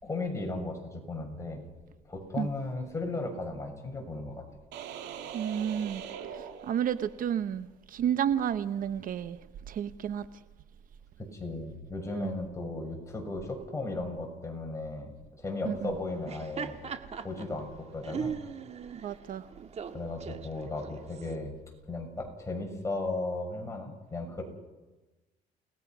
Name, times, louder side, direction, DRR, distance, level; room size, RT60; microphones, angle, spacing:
voice 1, 0.0-1.6 2.1-4.4 11.2-16.8 17.2-18.4 19.9-21.5 21.9-24.4, left 2 dB, 15° left, 6.9 m, -36 dB
sound 1, 4.7-7.3, right 8 dB, 85° right, 2.9 m, -42 dB
voice 2, 5.3-6.0 6.3-9.4 9.7-10.3 12.1-12.3 15.6-15.9 18.9-19.5, right 9 dB, 55° right, 0.9 m, -31 dB
Laughter, 16.1-21.4, right 6 dB, 40° right, 1.9 m, -40 dB
29.5 x 19.5 x 6.2 m
cardioid pair, 110°, 17 cm